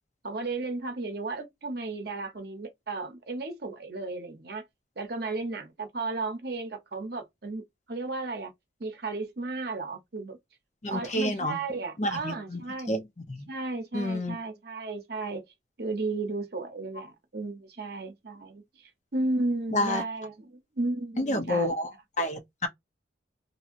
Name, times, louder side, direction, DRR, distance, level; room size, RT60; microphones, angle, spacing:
voice 1, 0.2-4.6 5.0-8.5 8.8-10.4 10.9-13.0 13.5-15.4 15.8-21.7, right 3 dB, 55° right, 0.8 m, -34 dB
voice 2, 10.8-11.6 12.0-12.6 12.9-13.5 13.9-14.4 19.7-20.0 21.2-21.9 22.2-22.7, left 1 dB, 40° left, 0.7 m, -29 dB
2.8 x 2.7 x 2.5 m
head